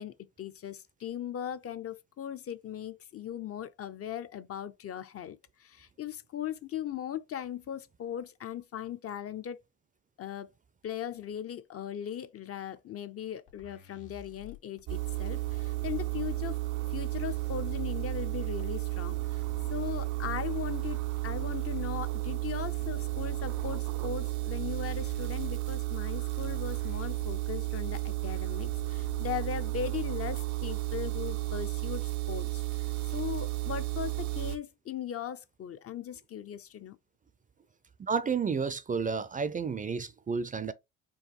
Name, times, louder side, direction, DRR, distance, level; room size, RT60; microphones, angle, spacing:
voice 1, 0.0-9.6 10.2-10.5 10.8-16.6 16.9-19.4 19.7-37.0, left 9 dB, 50° left, 0.6 m, -38 dB
sound 1, 13.5-29.4, left 4 dB, 85° left, 1.5 m, -51 dB
sound 2, 14.9-34.6, right 20 dB, 90° right, 0.7 m, -33 dB
voice 2, 38.0-40.7, right 5 dB, 25° right, 0.4 m, -31 dB
4.7 x 2.6 x 3.0 m
cardioid pair, 90°, 30 cm